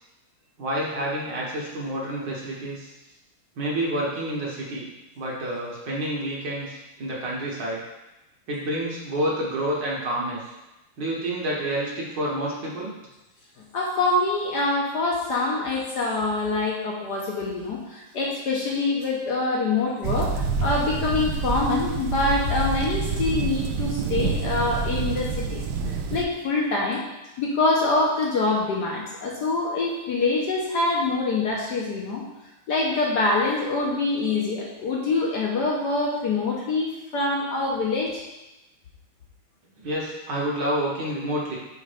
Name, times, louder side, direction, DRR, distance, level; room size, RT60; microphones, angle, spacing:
voice 1, 0.6-2.9 3.6-4.8 5.2-7.8 8.5-10.5 11.0-12.9 39.8-41.6, right 1 dB, 55° right, -4 dB, 1.8 m, -28 dB
voice 2, 13.7-27.0 27.4-32.2 32.7-38.2, left 3 dB, 60° left, -2 dB, 1.3 m, -25 dB
sound 1, 20.0-26.2, right 4 dB, 80° right, 0.9 m, -27 dB
6.5 x 3.5 x 5.0 m, 0.99 s
omnidirectional pair, 2.3 m